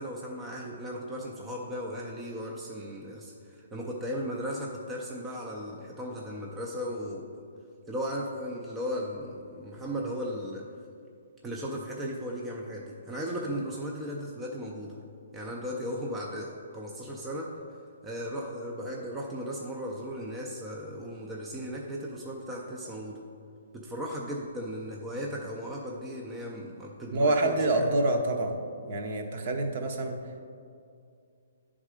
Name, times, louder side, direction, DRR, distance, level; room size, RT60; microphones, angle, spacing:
voice 1, 0.0-7.4 7.9-10.7 11.4-15.0 15.3-17.6 18.0-23.2 23.7-27.9, equal, 10° right, -2 dB, 0.5 m, -36 dB
voice 2, 27.1-28.6 28.9-30.2, right 2 dB, 40° right, 4 dB, 0.7 m, -26 dB
9.9 x 3.7 x 4.9 m, 2.4 s
hypercardioid pair, 170°, 0 cm